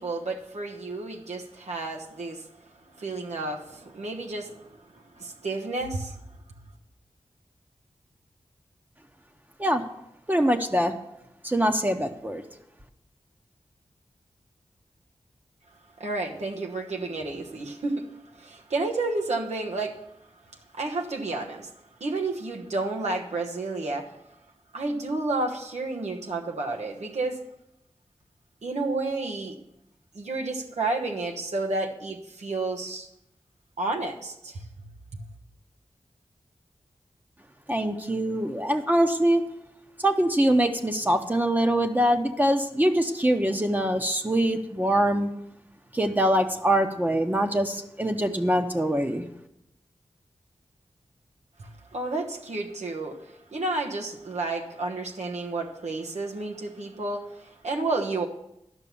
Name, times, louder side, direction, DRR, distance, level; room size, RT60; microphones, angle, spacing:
voice 1, 0.0-2.5 3.0-6.2 16.0-18.1 18.3-20.0 20.7-21.7 22.0-24.1 24.7-27.4 28.6-29.6 30.1-33.1 33.8-34.6 35.1-35.2 51.6-58.3, right 2 dB, 85° right, 1 dB, 1.2 m, -31 dB
voice 2, 10.3-10.9 11.4-12.4 37.7-39.4 40.0-45.3 45.9-49.3, right 1 dB, 15° right, 5 dB, 0.9 m, -23 dB
11.5 x 6.0 x 6.9 m, 0.82 s
wide cardioid pair, 80°, 11 cm